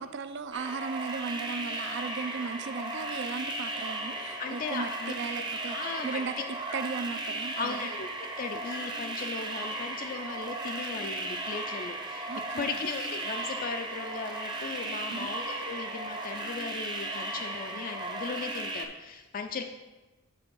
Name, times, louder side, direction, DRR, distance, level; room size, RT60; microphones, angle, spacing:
voice 1, 0.0-5.8 6.0-7.9 12.3-12.8 15.1-15.3, right 4 dB, 55° right, 12 dB, 0.4 m, -36 dB
sound 1, 0.5-18.8, right 2 dB, 20° right, 0.7 m, -36 dB
voice 2, 4.4-5.1 5.6-6.8 7.6-8.1 8.4-12.3 12.6-19.6, left 5 dB, 40° left, 5 dB, 0.4 m, -37 dB
7.7 x 3.8 x 6.0 m, 1.2 s
head